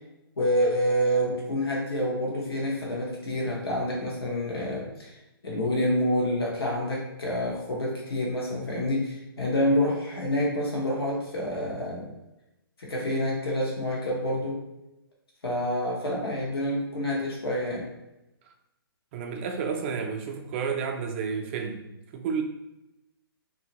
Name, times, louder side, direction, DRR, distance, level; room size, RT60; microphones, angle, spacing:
voice 1, 0.4-5.2 5.4-12.1 12.8-14.6 15.4-17.9, equal, 75° left, -3 dB, 1.0 m, -27 dB
voice 2, 19.1-21.8 22.1-22.4, right 6 dB, 30° right, 3 dB, 0.4 m, -31 dB
2.7 x 2.6 x 2.8 m, 0.94 s
hypercardioid pair, 135°, 13 cm